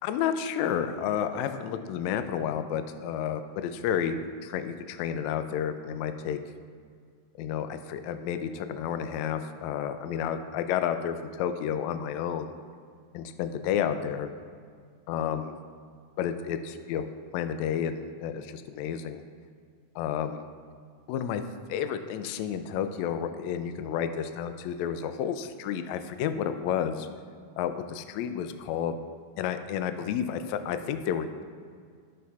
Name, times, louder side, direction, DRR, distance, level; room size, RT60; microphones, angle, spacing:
voice 1, 0.0-4.2 4.4-6.4 7.4-12.5 13.1-14.3 15.1-15.5 16.2-17.1 17.3-19.2 19.9-20.4 21.1-21.4 21.7-27.1 27.6-28.9 29.4-31.4, left 8 dB, 80° left, 9 dB, 1.7 m, -31 dB
16.5 x 6.0 x 2.4 m, 2.1 s
omnidirectional pair, 3.7 m